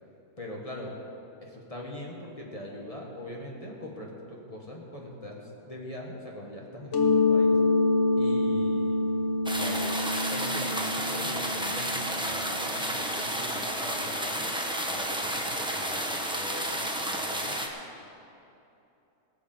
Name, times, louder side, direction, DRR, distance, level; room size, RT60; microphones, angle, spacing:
voice 1, 0.4-0.9 1.4-7.6 8.2-9.0 9.5-9.9 10.3-14.5 14.8-17.6, left 1 dB, 20° left, -2 dB, 1.7 m, -41 dB
Mallet percussion, 6.9-12.5, left 3 dB, 50° left, 1.3 m, -26 dB
sound 1, 9.5-17.7, right 1 dB, 5° right, 0.8 m, -31 dB
18.5 x 7.0 x 6.7 m, 2.8 s
omnidirectional pair, 1.7 m